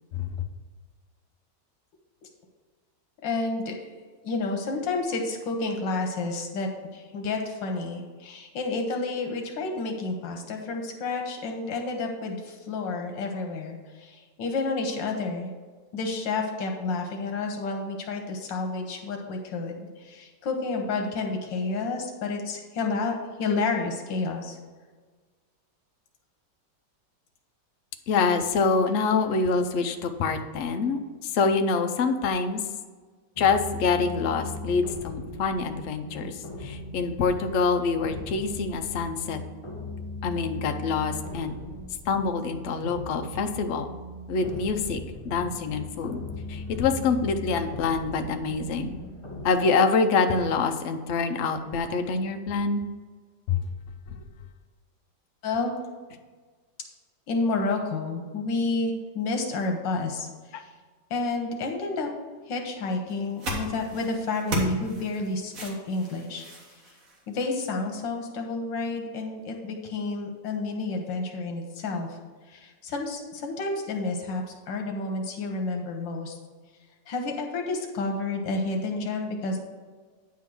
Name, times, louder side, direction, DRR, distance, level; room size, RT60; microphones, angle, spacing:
voice 1, 3.2-3.8 4.2-15.5 15.9-24.6 55.4-55.7 57.3-60.7 61.1-62.1 62.5-66.4 67.3-72.2 72.5-76.4 77.1-79.6, left 3 dB, 85° left, 2 dB, 1.6 m, -30 dB
voice 2, 28.1-32.6 33.4-39.4 40.2-41.5 42.1-43.9 44.3-46.2 46.5-49.0 49.4-52.8 53.5-53.6 60.5-60.6, left 4 dB, 70° left, 7 dB, 0.7 m, -26 dB
sound 1, 33.4-49.5, left 3 dB, 20° left, 0.8 m, -38 dB
sound 2, 63.1-67.8, equal, 50° right, 1.9 m, -35 dB
9.3 x 3.7 x 6.1 m, 1.5 s
omnidirectional pair, 1.9 m